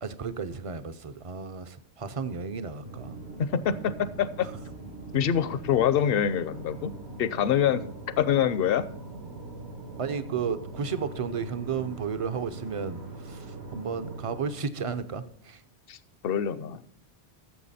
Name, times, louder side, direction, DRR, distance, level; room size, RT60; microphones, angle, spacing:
voice 1, 0.0-3.2 4.4-4.5 10.0-15.6, right 6 dB, 40° right, 12 dB, 0.6 m, -33 dB
sound 1, 2.8-14.5, right 2 dB, 80° right, 2.4 m, -42 dB
voice 2, 3.4-4.5 5.1-6.9 7.2-7.8 8.2-8.9 15.9-16.0 16.2-16.8, left 9 dB, 65° left, 16 dB, 0.8 m, -25 dB
14.0 x 7.0 x 4.2 m, 0.67 s
omnidirectional pair, 1.1 m